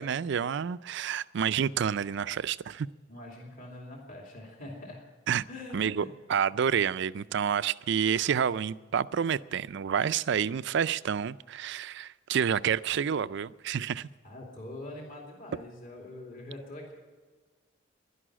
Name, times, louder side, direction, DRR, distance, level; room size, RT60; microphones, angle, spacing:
voice 1, 0.0-2.9 5.3-5.4 5.7-14.1, right 7 dB, 65° right, 16 dB, 0.4 m, -29 dB
voice 2, 3.1-5.0 5.5-6.1 14.2-16.9, left 1 dB, 45° left, -1 dB, 2.7 m, -44 dB
11.5 x 11.0 x 10.0 m, 1.5 s
head